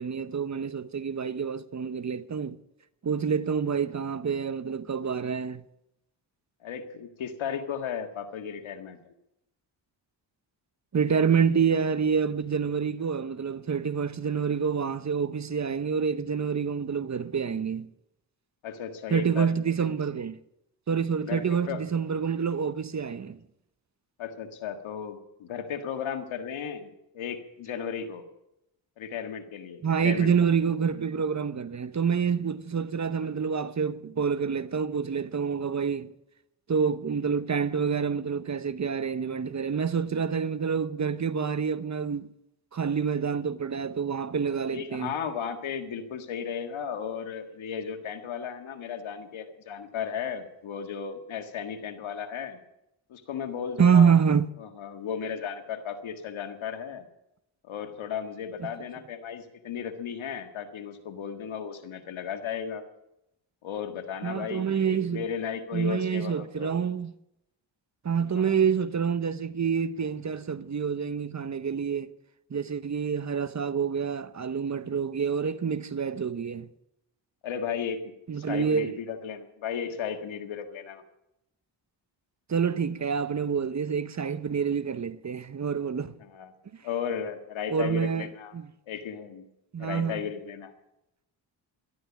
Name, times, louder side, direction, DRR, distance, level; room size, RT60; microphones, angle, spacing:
voice 1, 0.0-2.6 3.0-5.6 10.9-17.9 19.1-20.4 20.9-23.4 29.8-36.1 36.7-42.3 42.7-45.1 53.8-54.5 64.2-65.3 65.7-67.1 68.0-72.1 72.5-76.7 78.3-78.9 82.5-86.1 87.7-88.3 88.5-88.6 89.7-90.2, right 6 dB, 35° right, 0.9 m, -27 dB
voice 2, 6.6-9.1 18.6-19.9 21.2-21.8 24.2-28.2 29.0-30.3 44.7-52.6 53.1-54.1 54.6-57.1 57.6-62.8 63.6-66.7 68.4-68.5 77.4-78.0 78.4-81.0 86.2-86.5 86.8-88.5 88.9-89.4 89.8-90.7, left 7 dB, 80° left, 1.8 m, -35 dB
12.5 x 12.5 x 7.2 m
cardioid pair, 60°, 47 cm